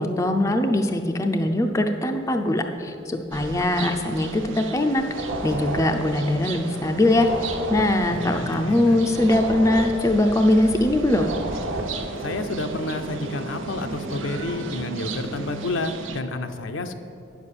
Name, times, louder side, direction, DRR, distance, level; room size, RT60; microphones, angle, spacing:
voice 1, 0.0-11.3, left 1 dB, 15° left, 4 dB, 0.5 m, -22 dB
sound 1, 3.3-16.2, right 4 dB, 75° right, 0.7 m, -36 dB
sound 2, 5.1-14.8, equal, 30° right, 1.0 m, -42 dB
sound 3, 5.1-6.8 7.1-10.8 11.1-12.4, right 1 dB, 55° right, 1.2 m, -32 dB
voice 2, 8.2-9.0 12.2-16.9, left 2 dB, 75° left, 7 dB, 0.6 m, -30 dB
9.5 x 7.1 x 6.7 m, 2.6 s
head